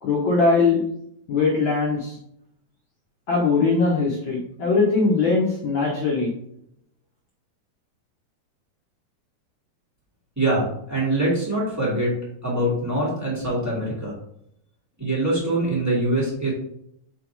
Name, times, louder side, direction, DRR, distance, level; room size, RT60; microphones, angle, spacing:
voice 1, 0.0-0.8 1.3-2.2 3.3-6.3, left 4 dB, 85° left, -3 dB, 1.0 m, -21 dB
voice 2, 10.3-12.2 12.4-14.1 15.0-16.5, right 1 dB, 5° right, -6 dB, 1.7 m, -23 dB
5.9 x 4.0 x 4.6 m, 0.74 s
omnidirectional pair, 3.7 m